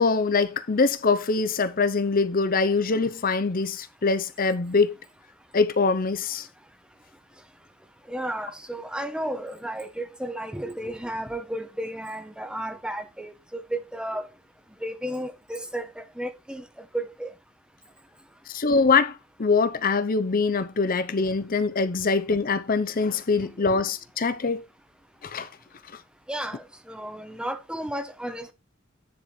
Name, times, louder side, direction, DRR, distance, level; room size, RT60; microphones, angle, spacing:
voice 1, 0.0-4.9 5.5-6.4 18.5-19.1 19.4-24.6 25.3-25.5, left 4 dB, 40° left, 0.6 m, -23 dB
voice 2, 8.1-14.3 14.8-16.6 16.9-17.3 26.3-28.5, right 1 dB, 5° right, 0.8 m, -33 dB
10.0 x 4.3 x 4.4 m
head